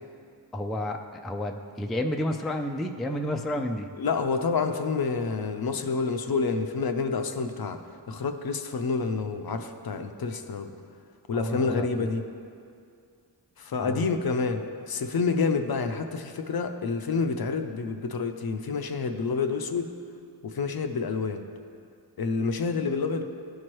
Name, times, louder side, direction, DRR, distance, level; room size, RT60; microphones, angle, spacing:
voice 1, 0.5-3.9 11.3-12.1 13.8-14.0, left 1 dB, ahead, 4 dB, 0.3 m, -31 dB
voice 2, 4.0-7.8 8.1-10.7 11.3-12.2 13.6-19.9 20.4-21.4 22.2-23.2, left 4 dB, 55° left, 7 dB, 0.5 m, -28 dB
13.0 x 4.6 x 3.0 m, 2.4 s
wide cardioid pair, 70°, 45 cm